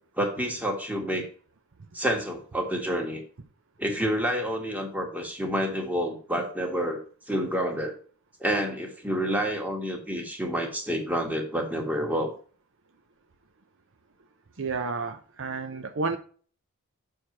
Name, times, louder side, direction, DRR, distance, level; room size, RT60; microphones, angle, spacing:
voice 1, 0.2-1.3 1.9-3.2 3.8-7.0 7.3-8.0 8.4-12.3, equal, 5° right, 2 dB, 1.6 m, -28 dB
voice 2, 14.6-16.2, right 4 dB, 60° right, 8 dB, 0.8 m, -31 dB
6.6 x 4.6 x 5.8 m, 0.42 s
head